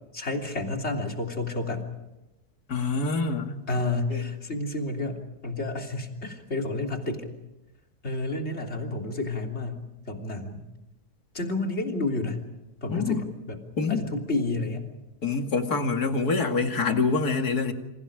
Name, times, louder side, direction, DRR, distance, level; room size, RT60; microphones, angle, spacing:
voice 1, 0.1-1.9 3.7-7.3 8.0-10.7 11.3-12.4 12.8-13.6 13.9-14.9, left 2 dB, 45° left, 2 dB, 3.6 m, -30 dB
voice 2, 2.7-3.6 4.1-4.2 12.9-13.3 13.8-14.1 15.2-17.7, left 4 dB, 75° left, 5 dB, 2.8 m, -26 dB
29.5 x 27.5 x 5.0 m, 0.96 s
omnidirectional pair, 1.6 m